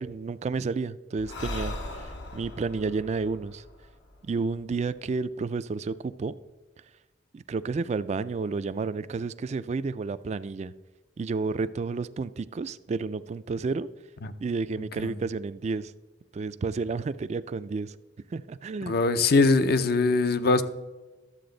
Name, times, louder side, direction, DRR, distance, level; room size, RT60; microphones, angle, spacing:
voice 1, 0.0-3.6 4.2-6.4 7.3-10.7 11.2-13.9 14.4-15.9 16.3-18.0 18.3-19.0, right 4 dB, 40° right, 0.3 m, -31 dB
Breathing, 1.2-4.7, left 2 dB, 80° left, 1.2 m, -39 dB
voice 2, 18.9-20.6, left 3 dB, 60° left, 0.6 m, -21 dB
11.5 x 7.6 x 3.9 m
head